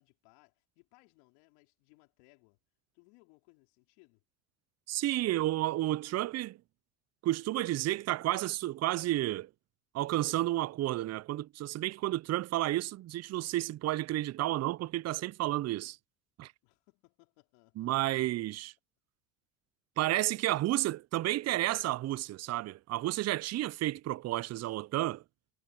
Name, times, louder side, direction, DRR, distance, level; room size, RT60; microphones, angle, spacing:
voice 1, 0.0-2.6 2.9-4.2 16.6-18.2, left 29 dB, 75° left, 4.7 m, -65 dB
voice 2, 4.9-6.6 7.2-9.5 9.9-16.0 16.4-16.5 17.8-18.7 20.0-25.2, right 15 dB, 35° right, 0.5 m, -31 dB
hypercardioid pair, 80°, 47 cm